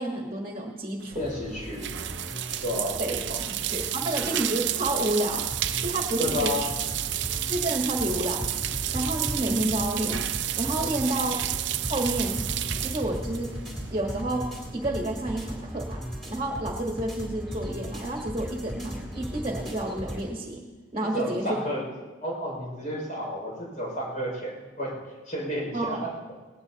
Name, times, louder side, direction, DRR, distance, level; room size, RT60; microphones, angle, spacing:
voice 1, 0.0-1.2 3.0-3.2 3.7-5.4 5.8-6.7 7.5-8.5 8.9-10.3 10.6-11.4 11.9-12.5 12.8-13.5 13.9-16.0 16.3-20.6 20.9-21.5 25.7-26.1, right 1 dB, 25° right, 0 dB, 1.5 m, -30 dB
sound 1, 1.0-14.2, right 13 dB, 65° right, 0.5 m, -31 dB
voice 2, 1.1-2.0 2.6-3.0 3.3-3.4 6.2-6.7 10.8-10.9 21.0-21.9 22.2-25.0 25.2-26.1, equal, 40° left, -3 dB, 5.8 m, -31 dB
sound 2, 1.1-20.2, equal, ahead, 3.4 m, -37 dB
19.0 x 17.5 x 2.9 m, 1.3 s
head